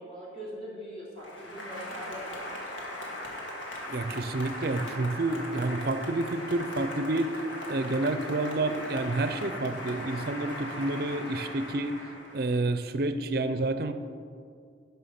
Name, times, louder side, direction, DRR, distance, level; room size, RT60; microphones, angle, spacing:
voice 1, 0.0-2.6, equal, 30° left, -7 dB, 2.8 m, -42 dB
Applause, 1.2-12.7, left 1 dB, 85° left, 1.8 m, -39 dB
voice 2, 3.9-7.4 7.7-12.0 12.3-13.9, right 2 dB, 50° right, 9 dB, 0.5 m, -29 dB
11.0 x 5.7 x 5.8 m, 2.3 s
head